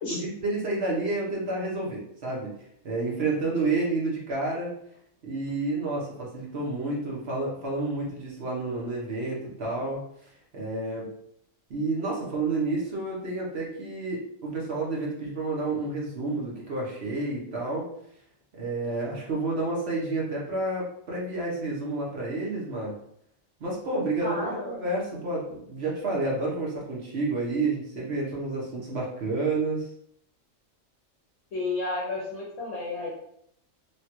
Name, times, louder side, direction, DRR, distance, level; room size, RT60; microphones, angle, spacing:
voice 1, 0.1-2.5 2.8-4.7 5.2-10.0 10.5-11.1 11.7-17.9 18.6-22.9 23.6-29.9, right 2 dB, 55° right, -3 dB, 1.0 m, -30 dB
voice 2, 24.2-24.8 31.5-33.1, left 3 dB, 70° left, -5 dB, 1.0 m, -32 dB
3.1 x 2.3 x 2.8 m, 0.70 s
omnidirectional pair, 1.4 m